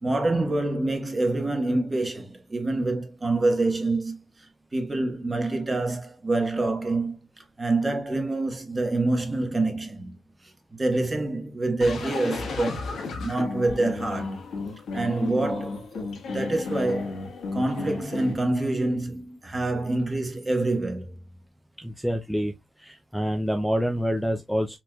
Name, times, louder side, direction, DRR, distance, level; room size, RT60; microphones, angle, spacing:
voice 1, 0.0-7.2 7.6-10.1 10.7-14.4 14.9-17.2 17.5-21.1, right 2 dB, 30° right, 1.2 m, -26 dB
sound 1, 11.8-18.3, left 4 dB, 80° left, 1.3 m, -33 dB
voice 2, 21.8-22.5 22.8-24.8, equal, ahead, 0.5 m, -27 dB
4.3 x 3.0 x 2.3 m
cardioid pair, 80°, 0 cm